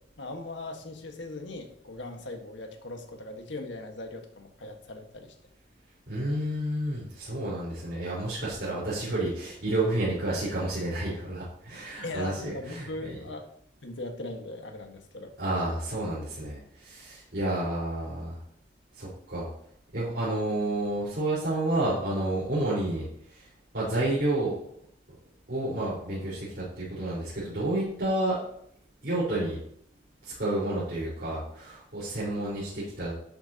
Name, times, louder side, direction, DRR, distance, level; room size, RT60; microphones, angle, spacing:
voice 1, 0.2-5.3 12.0-13.5 13.8-15.3, left 2 dB, 80° left, 4 dB, 1.5 m, -39 dB
voice 2, 6.1-13.2 15.4-18.4 18.9-19.5 19.9-23.5 23.7-24.5 25.5-28.4 29.0-29.6 30.2-33.1, right 1 dB, 60° right, -10 dB, 4.4 m, -30 dB
11.5 x 8.9 x 2.9 m, 0.67 s
head